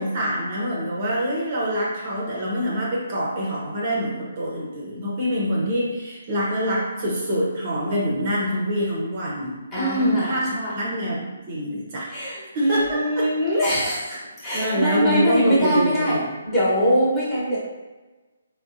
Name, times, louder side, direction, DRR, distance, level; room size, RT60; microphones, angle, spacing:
voice 1, 0.0-12.1 12.5-13.3 14.5-16.4, equal, 40° right, -4 dB, 0.7 m, -25 dB
voice 2, 9.7-10.7 12.1-16.2 16.5-17.6, equal, 10° left, -10 dB, 1.0 m, -22 dB
3.5 x 2.2 x 2.6 m, 1.2 s
hypercardioid pair, 155°, 0 cm